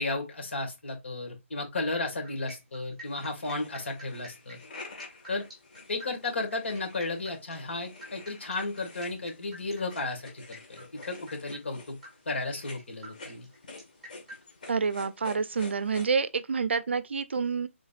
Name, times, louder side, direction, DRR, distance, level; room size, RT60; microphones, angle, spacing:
voice 1, 0.0-4.6 5.3-5.5 5.9-12.0 12.3-13.5, left 2 dB, 60° left, 2.4 m, -34 dB
sound 1, 2.2-14.4, equal, ahead, 1.4 m, -50 dB
sound 2, 3.0-16.1, left 3 dB, 40° left, 1.8 m, -49 dB
voice 2, 14.7-17.7, right 5 dB, 55° right, 0.5 m, -28 dB
4.9 x 3.9 x 2.5 m
hypercardioid pair, 170°, 7 cm